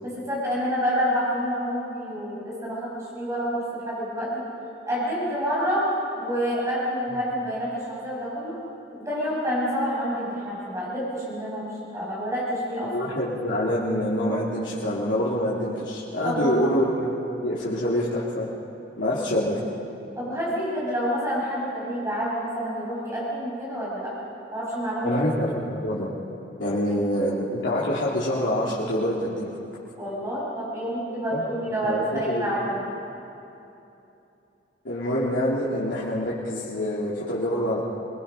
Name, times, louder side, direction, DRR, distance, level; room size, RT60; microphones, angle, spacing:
voice 1, 0.0-4.5 4.9-5.9 6.2-8.5 9.0-11.7 11.9-12.9 16.2-16.8 17.4-17.5 20.2-24.1 24.5-25.2 26.8-27.0 30.0-32.9, equal, 15° right, -7 dB, 7.3 m, -28 dB
voice 2, 12.8-18.5 19.0-19.6 25.0-26.1 26.6-29.6 31.3-31.4 31.8-32.5 34.8-37.8, equal, 85° left, -8 dB, 2.8 m, -26 dB
25.5 x 21.0 x 5.6 m, 2.8 s
head